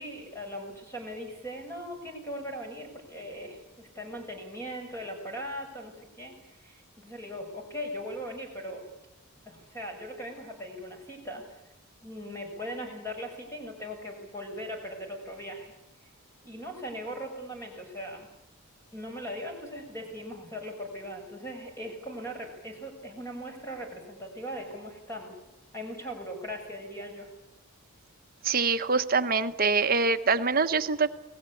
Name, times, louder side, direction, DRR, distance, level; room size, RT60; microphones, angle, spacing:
voice 1, 0.0-8.8 9.5-11.4 12.0-15.7 16.4-18.3 18.9-25.3 25.7-27.3, equal, 10° left, 2 dB, 6.5 m, -39 dB
voice 2, 28.4-31.2, right 4 dB, 40° right, 9 dB, 1.2 m, -25 dB
29.0 x 19.5 x 8.7 m, 0.92 s
head